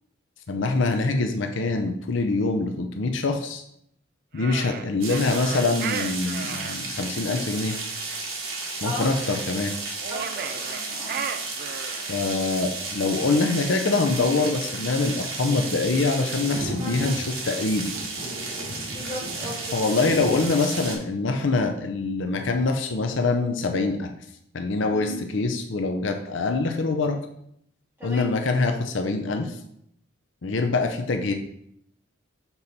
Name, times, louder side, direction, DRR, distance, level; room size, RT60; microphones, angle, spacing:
voice 1, 0.5-3.6 4.3-7.8 8.8-9.7 12.1-17.9 19.7-24.1 24.5-27.2 28.0-29.6 30.4-31.3, left 3 dB, 65° left, 5 dB, 0.6 m, -24 dB
sound 1, 4.4-6.8 10.0-12.1, right 7 dB, 50° right, 0.4 m, -34 dB
sound 2, 5.0-21.0, right 3 dB, 85° right, 1.7 m, -33 dB
voice 2, 10.1-11.2 16.7-17.2 18.7-19.8 24.9-25.1 28.0-28.3, left 1 dB, 10° right, -8 dB, 2.8 m, -36 dB
6.9 x 4.1 x 4.2 m, 0.73 s
head